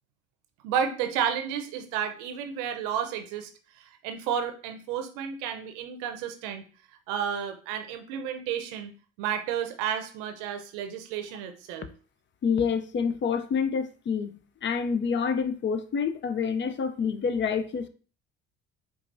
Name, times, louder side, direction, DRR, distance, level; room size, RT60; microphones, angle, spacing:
voice 1, 0.6-3.5 3.8-6.6 7.1-8.9 9.2-11.9, right 8 dB, 80° right, 0.6 m, -31 dB
voice 2, 12.4-14.3 14.6-17.9, left 6 dB, 35° left, 0.4 m, -27 dB
4.6 x 2.3 x 2.6 m
hypercardioid pair, 60°, 31 cm